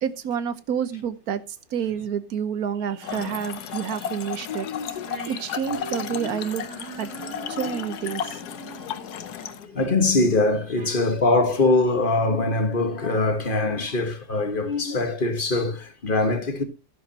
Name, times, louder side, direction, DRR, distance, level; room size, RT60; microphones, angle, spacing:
voice 1, 0.0-4.7 5.3-6.6 7.0-7.1 7.5-8.4 10.8-11.0, right 8 dB, 65° right, 1.3 m, -29 dB
Trickle dribble / Fill (with liquid), 3.0-9.7, left 9 dB, 75° left, 1.4 m, -34 dB
sound 1, 4.8-10.2, right 2 dB, 50° right, 4.1 m, -41 dB
voice 2, 8.8-9.2 9.5-16.6, left 2 dB, 35° left, 1.5 m, -23 dB
12.5 x 11.0 x 2.8 m
omnidirectional pair, 1.7 m